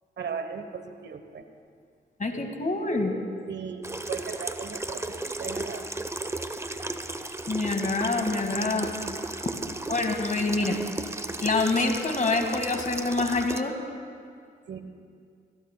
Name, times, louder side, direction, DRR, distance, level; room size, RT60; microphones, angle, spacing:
voice 1, 0.2-1.5 3.5-5.9 9.6-9.7 14.7-14.8, right 6 dB, 65° right, 8 dB, 1.0 m, -37 dB
voice 2, 2.2-3.1 7.5-8.9 9.9-10.8 11.4-13.7, left 3 dB, 40° left, 5 dB, 1.8 m, -26 dB
Water tap faucet / Sink (filling or washing), 3.8-13.6, right 2 dB, 15° right, 0.8 m, -35 dB
21.5 x 16.5 x 2.2 m, 2.3 s
supercardioid pair, 50°, 20 cm